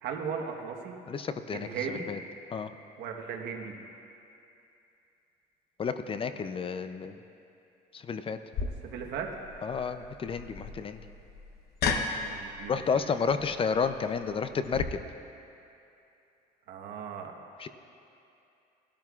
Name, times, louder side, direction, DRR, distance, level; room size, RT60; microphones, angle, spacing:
voice 1, 0.0-0.9 1.5-2.1 3.0-3.7 8.8-9.3 12.2-12.7 16.7-17.3, right 6 dB, 80° right, 2 dB, 1.3 m, -36 dB
voice 2, 1.1-2.2 2.5-2.7 5.8-7.2 7.9-8.4 9.6-11.0 12.7-15.0 17.6-17.7, left 5 dB, 35° left, 10 dB, 0.5 m, -31 dB
sound 1, 8.5-14.8, left 4 dB, 65° left, 0.9 m, -36 dB
19.0 x 12.0 x 2.4 m, 2.7 s
cardioid pair, 110°, 17 cm